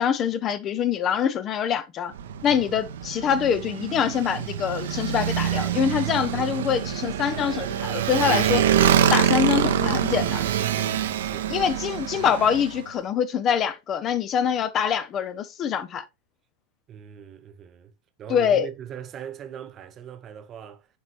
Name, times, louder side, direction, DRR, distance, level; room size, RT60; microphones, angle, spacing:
voice 1, 0.0-2.1 2.4-8.6 9.1-10.5 11.5-16.0 18.3-18.7, left 8 dB, 30° left, 0.5 m, -24 dB
Motorcycle, 2.1-12.8, right 9 dB, 60° right, 0.7 m, -25 dB
voice 2, 10.7-11.5 16.9-17.9 18.2-20.9, right 9 dB, 30° right, 1.1 m, -40 dB
10.0 x 4.0 x 3.1 m
figure-of-eight pair, 90°, 0 cm